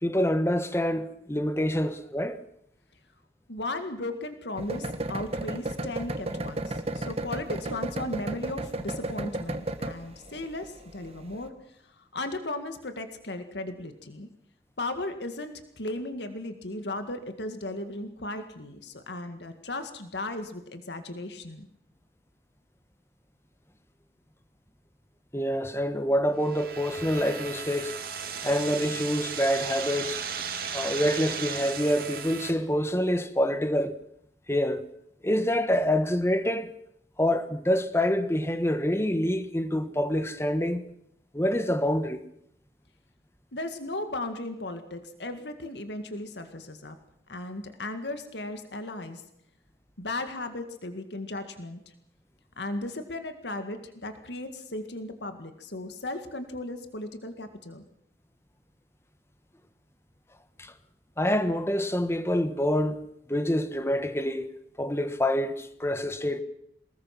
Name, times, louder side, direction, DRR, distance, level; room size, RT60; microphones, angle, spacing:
voice 1, 0.0-2.4 25.3-27.9 28.4-30.2 30.7-34.0 34.5-34.8 35.2-36.7 37.2-40.8 41.3-42.2 60.6-60.7 61.2-64.5 64.8-66.4, equal, 15° left, 1.3 m, -26 dB
voice 2, 3.5-14.3 14.8-21.7 43.5-47.0 47.3-49.2 50.0-51.8 52.6-57.8, left 2 dB, 75° left, 2.0 m, -36 dB
sound 1, 4.6-11.5, right 1 dB, 35° right, 1.5 m, -33 dB
sound 2, 26.4-32.5, right 6 dB, 55° right, 2.7 m, -35 dB
24.0 x 20.0 x 6.0 m
head